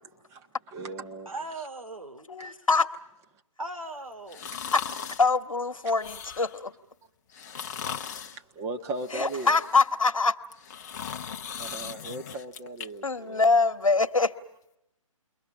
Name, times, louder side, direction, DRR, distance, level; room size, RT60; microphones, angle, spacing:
voice 1, 0.0-1.3 2.4-2.5 4.5-4.7 8.0-9.6 11.6-13.5, right 2 dB, 15° right, 1.4 m, -38 dB
voice 2, 1.3-2.7 3.6-4.5, right 2 dB, 80° right, 2.7 m, -39 dB
voice 3, 2.3-2.9 4.6-4.8 5.2-6.7 9.1-10.3 13.0-14.3, left 4 dB, 75° left, 1.4 m, -24 dB
sound 1, 4.3-5.3 5.9-6.6 7.3-8.4 9.0-9.9 10.4-12.9 13.3-13.4, left 7 dB, 30° left, 1.0 m, -38 dB
29.5 x 23.0 x 7.2 m
figure-of-eight pair, 140°, 17 cm